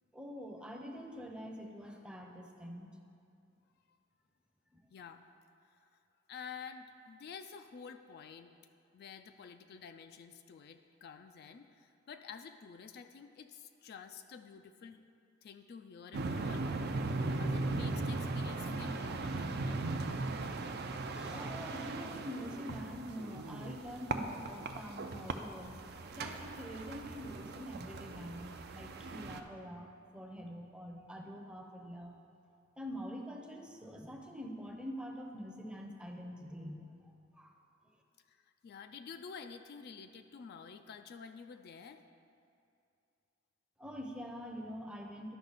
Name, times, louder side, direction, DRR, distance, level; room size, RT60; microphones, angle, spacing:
voice 1, 0.1-2.9 4.7-4.8 21.1-32.1 32.8-37.6 43.8-45.3, equal, 5° right, 2 dB, 0.6 m, -45 dB
voice 2, 4.9-5.2 5.7-5.9 6.3-8.5 8.9-15.0 15.4-16.7 17.3-19.8 38.3-42.0, left 6 dB, 50° left, 7 dB, 0.3 m, -50 dB
sound 1, 16.1-29.4, right 3 dB, 55° right, 0.5 m, -38 dB
12.0 x 5.4 x 4.0 m, 2.5 s
head